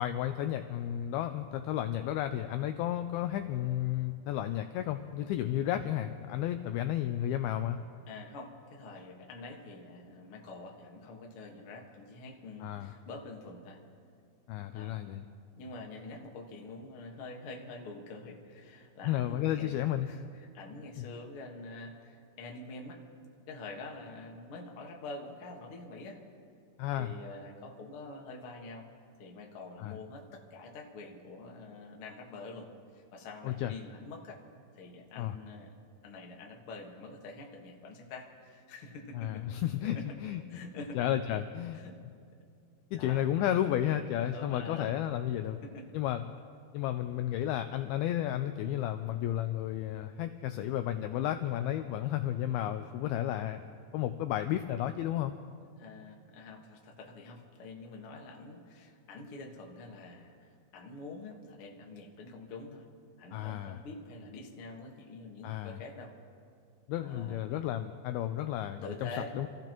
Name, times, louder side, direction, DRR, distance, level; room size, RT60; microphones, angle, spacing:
voice 1, 0.0-7.8 12.6-12.9 14.5-15.3 19.0-20.1 21.0-21.1 26.8-27.1 29.8-30.0 33.4-33.7 35.2-35.3 39.1-40.4 41.0-41.8 42.9-45.6 45.9-46.3 46.7-53.6 53.9-55.3 63.3-63.8 65.4-65.8 66.9-69.1 69.4-69.5, left 12 dB, 85° left, 8 dB, 2.1 m, -32 dB
voice 2, 8.1-13.8 14.7-14.9 15.6-19.7 20.0-23.0 23.5-26.2 26.9-28.9 29.2-34.4 34.7-35.7 36.0-39.4 39.8-40.1 40.5-41.0 41.7-42.0 42.9-43.2 44.3-44.9 45.6-45.8 55.8-62.9 63.2-66.2 67.0-67.5 68.4-68.5 68.8-69.5, left 3 dB, 60° left, 0 dB, 1.4 m, -46 dB
28.0 x 14.5 x 3.0 m, 2.3 s
omnidirectional pair, 4.9 m